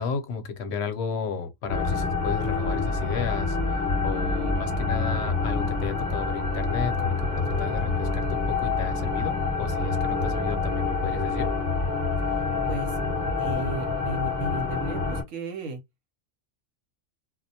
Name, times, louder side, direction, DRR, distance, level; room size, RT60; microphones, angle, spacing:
voice 1, 0.0-3.6 4.0-11.5, left 5 dB, 65° left, 0.8 m, -33 dB
sound 1, 1.7-15.2, left 3 dB, 15° left, 1.0 m, -27 dB
voice 2, 12.3-13.0 13.4-15.8, right 2 dB, 80° right, 1.0 m, -35 dB
2.2 x 2.1 x 2.6 m
omnidirectional pair, 1.4 m